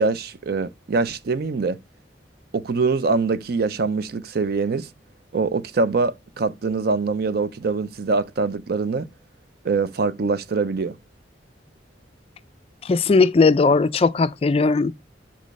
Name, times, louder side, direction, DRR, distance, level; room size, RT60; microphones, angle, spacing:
voice 1, 0.0-1.8 2.5-4.9 5.3-9.1 9.6-10.9, right 4 dB, 55° right, 0.5 m, -23 dB
voice 2, 12.8-14.9, left 4 dB, 30° left, 0.3 m, -18 dB
5.4 x 5.3 x 5.2 m
head